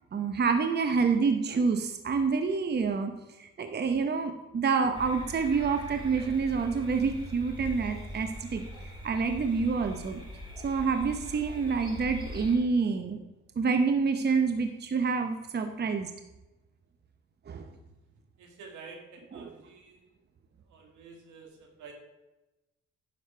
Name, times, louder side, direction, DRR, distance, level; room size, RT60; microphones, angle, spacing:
voice 1, 0.1-3.1 3.4-8.6 9.0-10.2 10.6-13.2 13.6-16.1 17.5-17.7 19.3-19.5, right 5 dB, 35° right, 6 dB, 0.8 m, -27 dB
sound 1, 4.9-12.6, equal, 15° right, 3.2 m, -42 dB
voice 2, 18.4-20.1 20.7-21.9, right 4 dB, 80° right, 2 dB, 2.2 m, -49 dB
10.0 x 6.4 x 4.5 m, 1.0 s
cardioid pair, 90°, 30 cm